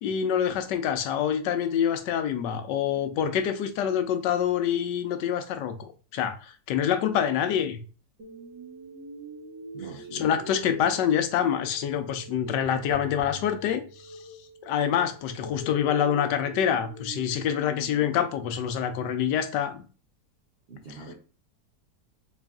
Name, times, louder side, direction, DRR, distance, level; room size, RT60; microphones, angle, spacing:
voice 1, 0.0-7.8 10.1-14.2 14.6-19.8, left 9 dB, 90° left, 1.3 m, -26 dB
sound 1, 8.2-18.2, right 1 dB, 90° right, 1.7 m, -44 dB
voice 2, 9.7-10.2 20.7-21.1, right 3 dB, 70° right, 0.5 m, -43 dB
4.0 x 2.5 x 3.5 m
omnidirectional pair, 1.8 m